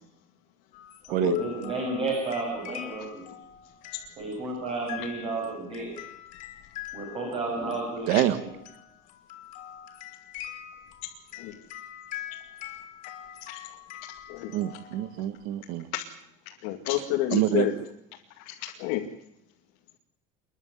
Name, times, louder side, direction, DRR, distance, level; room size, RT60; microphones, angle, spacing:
sound 1, 0.7-15.4, left 12 dB, 45° left, 3.5 m, -44 dB
voice 1, 1.1-3.3 4.2-5.9 6.9-8.5, right 3 dB, 30° right, 0 dB, 6.7 m, -32 dB
voice 2, 8.1-8.4 14.5-15.9 17.3-17.7, right 13 dB, 60° right, 13 dB, 1.6 m, -26 dB
voice 3, 16.6-17.7 18.5-19.0, left 14 dB, 70° left, 0 dB, 2.4 m, -29 dB
29.0 x 11.0 x 9.7 m, 0.80 s
cardioid pair, 175°, 17 cm